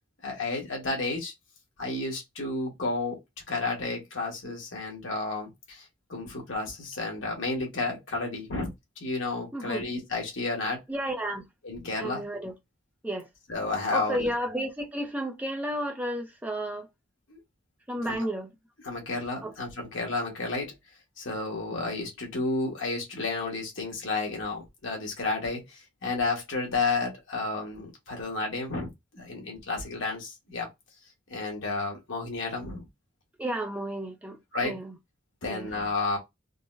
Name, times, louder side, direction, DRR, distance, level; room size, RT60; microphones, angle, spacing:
voice 1, 0.2-1.3 1.8-3.2 3.5-10.8 11.6-12.2 13.5-14.3 17.3-17.4 18.0-18.2 18.8-20.7 21.2-30.7 31.3-32.9 34.5-34.8 35.4-36.2, left 3 dB, 70° left, 1.3 m, -31 dB
voice 2, 9.5-9.8 10.9-11.4 12.0-12.5 13.0-13.3 13.9-16.9 17.9-18.5 19.4-19.5 33.4-34.4 34.6-34.9 35.5-35.7, right 1 dB, 5° right, 0.5 m, -32 dB
3.8 x 2.1 x 2.4 m
head